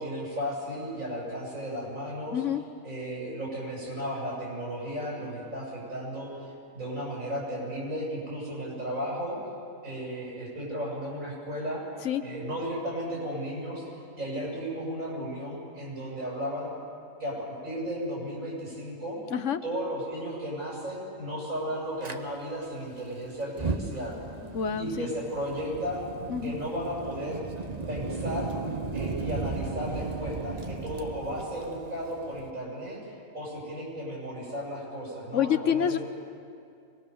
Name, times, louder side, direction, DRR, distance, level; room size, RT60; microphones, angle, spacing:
voice 1, 0.0-2.4 2.8-6.3 6.7-9.4 9.8-11.8 12.2-13.9 14.2-16.7 17.2-19.2 19.6-24.2 24.8-26.0 26.4-27.4 27.9-28.5 28.9-33.0 33.3-36.0, equal, 85° right, -4 dB, 8.6 m, -34 dB
voice 2, 2.3-2.6 12.0-12.2 19.3-19.6 24.4-25.1 26.3-26.6 35.3-36.0, left 8 dB, 70° left, 11 dB, 1.2 m, -27 dB
Fire, 22.0-22.2 23.4-32.5, right 4 dB, 35° right, 1.1 m, -35 dB
25.0 x 21.0 x 7.1 m, 2.4 s
omnidirectional pair, 1.4 m